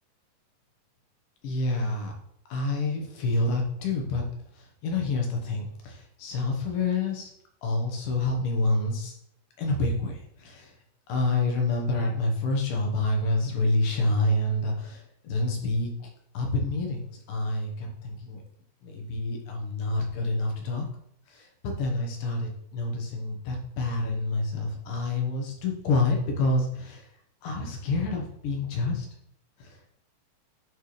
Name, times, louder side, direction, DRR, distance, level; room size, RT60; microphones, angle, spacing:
voice 1, 1.4-2.1 2.5-4.2 4.8-7.3 7.6-9.1 9.6-10.7 11.1-15.9 16.3-18.4 18.8-20.9 21.3-27.0 27.4-29.1, left 2 dB, 80° left, 1 dB, 2.9 m, -28 dB
11.0 x 4.4 x 3.3 m, 0.72 s
omnidirectional pair, 3.8 m